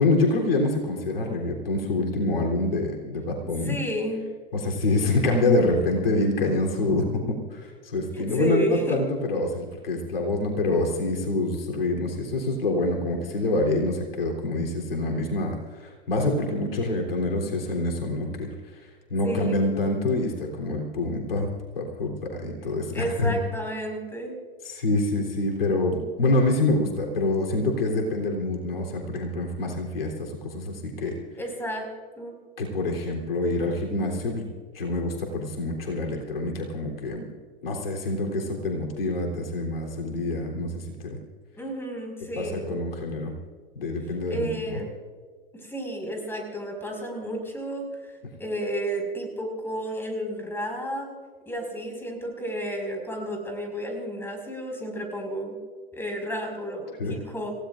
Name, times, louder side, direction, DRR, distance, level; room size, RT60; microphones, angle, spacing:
voice 1, 0.0-3.8 4.5-18.8 19.1-21.5 21.8-23.3 24.7-31.1 32.6-34.5 34.7-37.2 37.6-41.2 42.4-43.3 43.8-44.8 57.0-57.2, left 2 dB, 75° left, 0 dB, 3.5 m, -26 dB
voice 2, 3.6-4.2 8.1-9.1 19.2-19.6 22.9-24.3 31.4-31.9 32.2-32.3 41.6-42.7 44.3-44.9 45.5-47.9 48.4-51.1 51.5-55.6 55.9-57.5, right 1 dB, 10° left, 2 dB, 5.2 m, -31 dB
29.0 x 17.0 x 2.5 m, 1.6 s
hypercardioid pair, 95°, 29 cm